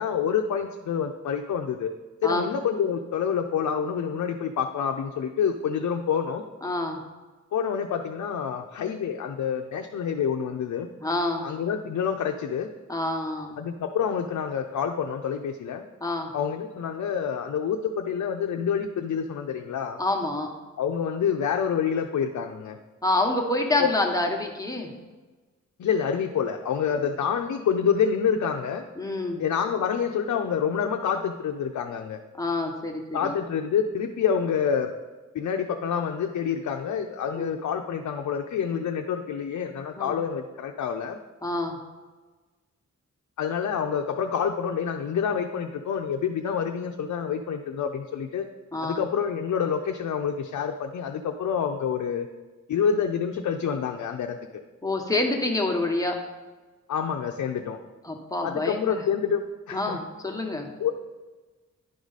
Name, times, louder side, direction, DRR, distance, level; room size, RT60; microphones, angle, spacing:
voice 1, 0.0-1.9 2.2-6.4 7.5-10.9 11.4-12.7 13.6-15.8 16.3-20.0 20.8-22.8 23.8-23.9 25.8-28.8 29.4-32.2 33.1-34.9 35.3-41.2 43.4-48.5 48.8-52.3 52.7-54.4 56.9-57.8 58.4-59.4 59.7-60.0 60.8-60.9, left 7 dB, 80° left, 3 dB, 0.5 m, -27 dB
voice 2, 6.6-7.0 11.0-11.5 12.9-13.6 16.0-16.3 20.0-20.5 23.0-24.9 26.9-27.0 28.9-29.4 32.4-33.4 37.4-37.5 40.0-40.2 41.4-41.8 48.7-49.0 54.8-56.2 58.0-59.0 59.7-60.7, left 2 dB, 10° left, 1 dB, 1.1 m, -27 dB
10.5 x 4.8 x 4.0 m, 1.3 s
wide cardioid pair, 105°, 29 cm